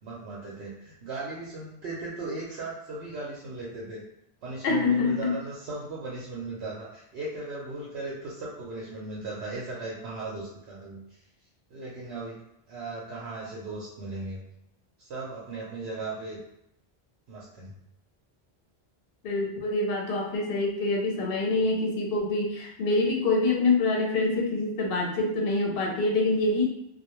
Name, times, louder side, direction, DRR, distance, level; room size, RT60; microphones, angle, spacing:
voice 1, 0.0-4.0 4.4-11.0 11.7-12.4 12.7-14.4 15.0-16.4 17.3-17.7, right 2 dB, 85° right, -6 dB, 0.9 m, -37 dB
voice 2, 4.6-5.3 19.2-26.6, left 3 dB, 65° left, -1 dB, 0.8 m, -25 dB
2.2 x 2.2 x 2.9 m, 0.78 s
omnidirectional pair, 1.1 m